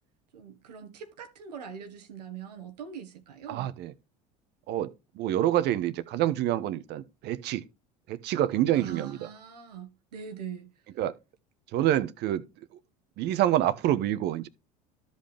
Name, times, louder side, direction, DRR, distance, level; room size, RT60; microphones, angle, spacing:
voice 1, 0.3-3.7 8.7-10.7, right 7 dB, 85° right, 1.5 m, -42 dB
voice 2, 3.5-3.9 4.7-7.6 8.1-9.2 11.0-11.1 11.7-12.4 13.2-14.5, right 12 dB, 55° right, 1.0 m, -27 dB
13.0 x 5.4 x 3.4 m
hypercardioid pair, 75°, 20 cm